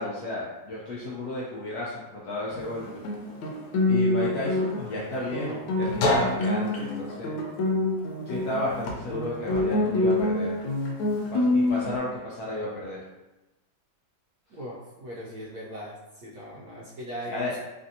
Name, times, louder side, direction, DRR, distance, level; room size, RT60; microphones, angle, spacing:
voice 1, 0.0-3.0 3.9-7.4 8.3-10.6 11.3-13.0 17.3-17.5, left 2 dB, 75° left, -5 dB, 0.9 m, -33 dB
Guitar, 2.5-12.0, left 2 dB, 90° left, 1.4 m, -26 dB
voice 2, 14.5-17.6, equal, 75° right, -6 dB, 0.9 m, -39 dB
3.3 x 2.5 x 2.7 m, 1.0 s
omnidirectional pair, 2.1 m